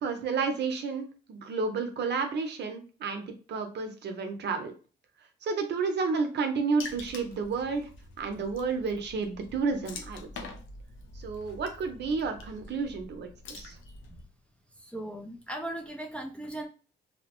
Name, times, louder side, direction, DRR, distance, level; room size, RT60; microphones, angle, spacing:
voice 1, 0.0-4.7 5.4-7.9 8.2-10.3 11.1-13.8, right 4 dB, 60° right, 5 dB, 0.7 m, -31 dB
Water / Splash splatter, 6.8-14.2, left 3 dB, 75° left, 0.6 m, -46 dB
voice 2, 14.8-16.7, right 1 dB, 5° left, 2 dB, 0.5 m, -38 dB
2.7 x 2.0 x 2.9 m, 0.37 s
cardioid pair, 90°, 20 cm